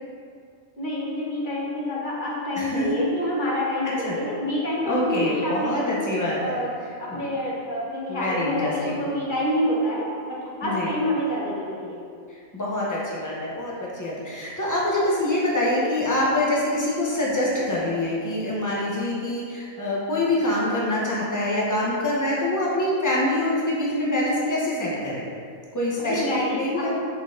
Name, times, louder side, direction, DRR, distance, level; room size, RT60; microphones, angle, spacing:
voice 1, 0.8-6.0 6.4-6.7 7.0-12.0 26.1-27.0, equal, 35° left, -5 dB, 1.3 m, -27 dB
voice 2, 2.6-3.0 4.0-4.1 4.8-6.6 7.1-7.2 8.1-8.9 10.6-10.9 12.3-25.2 25.7-26.9, left 1 dB, 15° left, -5 dB, 1.0 m, -25 dB
5.9 x 4.6 x 3.8 m, 2.3 s
omnidirectional pair, 1.4 m